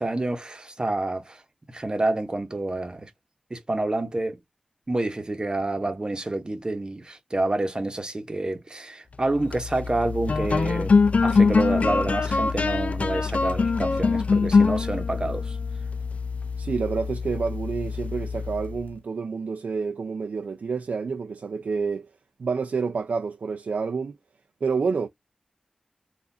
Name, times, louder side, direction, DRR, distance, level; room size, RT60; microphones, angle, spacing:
voice 1, 0.0-1.4 1.7-3.1 3.5-4.4 4.9-10.9 11.2-15.6, right 2 dB, 35° right, 1.0 m, -28 dB
sound 1, 9.3-18.9, left 4 dB, 65° left, 0.4 m, -24 dB
voice 2, 16.6-22.1 22.4-24.2 24.6-25.1, right 5 dB, 90° right, 0.4 m, -28 dB
4.0 x 2.5 x 2.6 m
wide cardioid pair, 65°, 2 cm